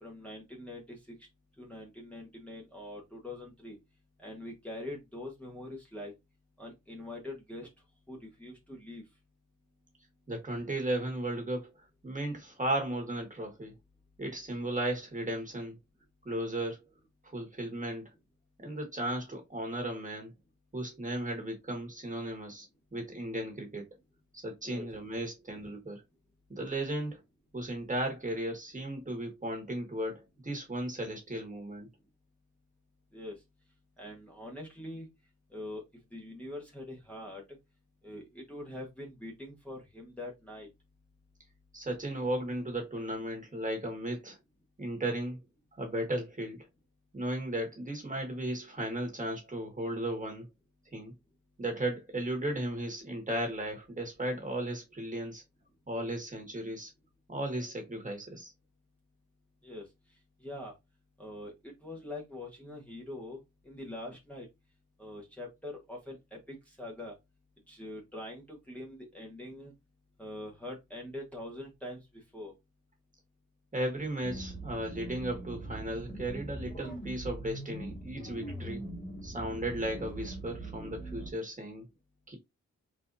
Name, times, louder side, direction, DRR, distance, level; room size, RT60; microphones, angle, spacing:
voice 1, 0.0-1.1 1.6-3.8 4.2-6.1 6.6-7.7 8.1-9.0 24.6-24.9 33.1-33.3 34.0-35.1 35.5-35.8 36.1-37.4 38.0-40.7 59.6-59.8 60.4-60.7 61.2-63.4 63.6-64.5 65.0-67.1 67.7-69.7 70.2-72.0 72.3-72.5, left 1 dB, 5° left, 1.3 m, -43 dB
voice 2, 10.3-11.7 12.0-13.7 14.2-15.8 16.2-16.8 17.2-18.1 18.6-20.3 20.7-22.7 22.9-23.9 24.3-26.0 26.5-27.2 27.5-31.9 41.7-44.4 44.8-45.4 45.8-46.7 47.1-50.5 50.9-51.1 51.6-55.4 55.9-56.9 57.3-58.5 73.7-78.8 79.2-81.8 82.3-82.4, right 1 dB, 25° right, 1.7 m, -35 dB
sound 1, 74.2-81.3, right 1 dB, 30° left, 1.8 m, -41 dB
4.2 x 4.1 x 2.6 m
wide cardioid pair, 105°, 30 cm